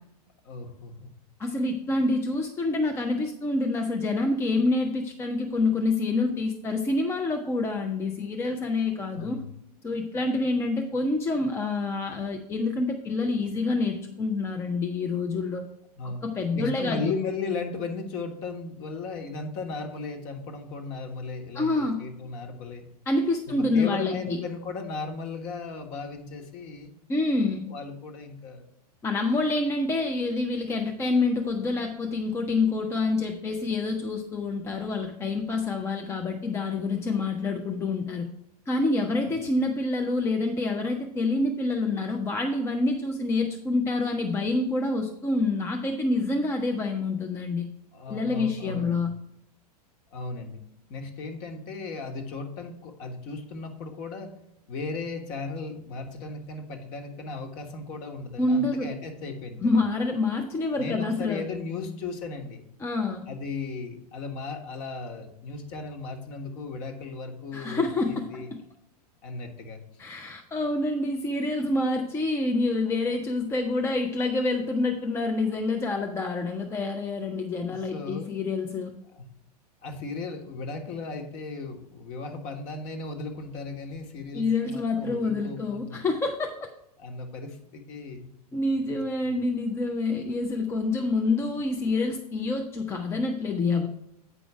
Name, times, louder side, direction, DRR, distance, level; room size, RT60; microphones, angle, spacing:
voice 1, 0.4-1.1 9.1-9.5 16.0-16.2 16.5-22.8 23.6-26.9 27.7-28.7 39.2-39.4 47.9-49.1 50.1-50.6 50.9-54.3 54.7-59.6 60.8-62.6 63.3-68.5 69.2-69.8 77.7-78.3 79.8-86.1 87.0-88.3 88.9-89.0 89.2-89.4, left 4 dB, 40° left, 4 dB, 1.4 m, -36 dB
voice 2, 1.4-9.4 9.8-15.7 16.0-17.1 21.5-22.0 23.1-24.4 27.1-27.7 29.0-38.3 38.7-47.7 48.1-49.1 58.4-58.9 59.6-61.5 62.8-63.3 67.5-68.6 70.0-78.9 84.3-86.7 88.5-93.9, left 3 dB, 15° left, 4 dB, 0.6 m, -27 dB
8.8 x 5.0 x 4.7 m, 0.78 s
figure-of-eight pair, 95°, 21 cm